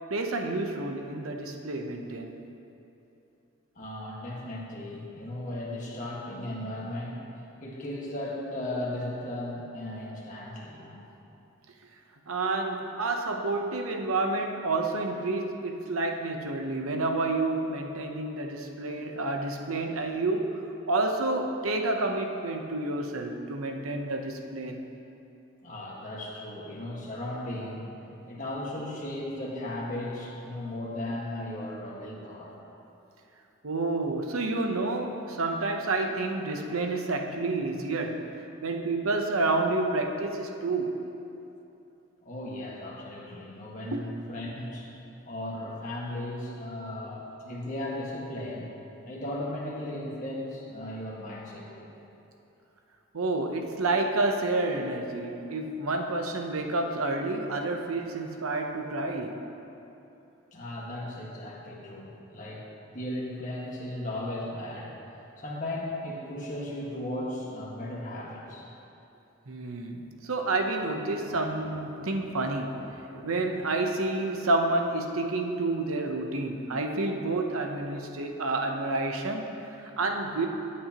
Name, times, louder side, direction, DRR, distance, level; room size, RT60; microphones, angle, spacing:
voice 1, 0.1-2.4 12.3-20.6 20.9-24.8 33.6-38.3 38.6-41.0 43.9-44.0 53.1-59.4 69.5-80.5, right 2 dB, 85° right, 4 dB, 0.9 m, -29 dB
voice 2, 3.7-7.3 7.6-11.0 25.6-27.9 28.3-32.6 42.2-44.9 45.2-48.7 49.1-51.9 60.5-62.6 62.9-64.9 65.4-68.7, left 1 dB, 35° left, -4 dB, 1.7 m, -36 dB
16.0 x 8.6 x 3.0 m, 2.9 s
head